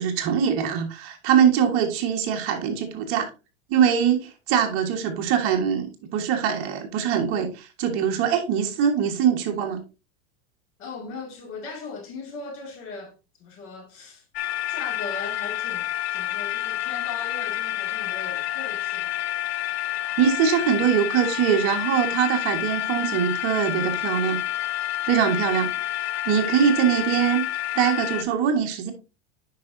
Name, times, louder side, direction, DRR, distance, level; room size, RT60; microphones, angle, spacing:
voice 1, 0.0-3.3 3.7-9.8 20.2-24.4 25.0-25.7 26.2-27.4 27.7-28.9, right 8 dB, 45° right, 1.6 m, -22 dB
voice 2, 10.8-14.2 14.7-19.2, left 4 dB, 45° left, 2.4 m, -38 dB
sound 1, 14.3-28.2, left 14 dB, 80° left, 0.8 m, -29 dB
10.5 x 5.0 x 2.7 m
supercardioid pair, 150°, 31 cm